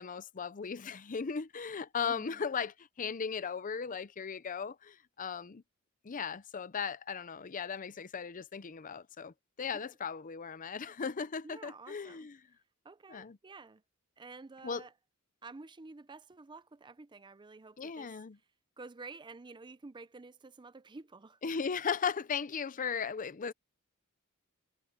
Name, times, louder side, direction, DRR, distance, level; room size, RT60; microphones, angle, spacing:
voice 1, 0.0-5.6 6.0-12.4 13.1-13.4 14.6-14.8 17.8-18.4 21.4-23.5, left 6 dB, 35° left, 0.6 m, -37 dB
voice 2, 2.0-2.4 9.7-9.9 11.4-12.3 12.8-13.8 14.2-14.9 15.4-18.2 18.8-21.4, right 3 dB, 20° right, 0.5 m, -50 dB
head